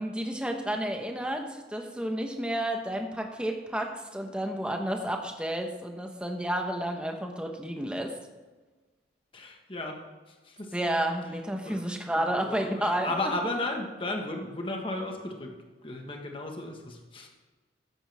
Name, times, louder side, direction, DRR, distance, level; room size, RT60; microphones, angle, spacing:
voice 1, 0.0-8.3 10.7-13.4, right 1 dB, 5° right, 3 dB, 1.0 m, -31 dB
voice 2, 9.3-10.0 10.5-10.7 11.6-11.8 12.1-15.5 15.8-17.3, left 2 dB, 30° left, 2 dB, 1.5 m, -34 dB
14.0 x 10.0 x 3.5 m, 1.3 s
head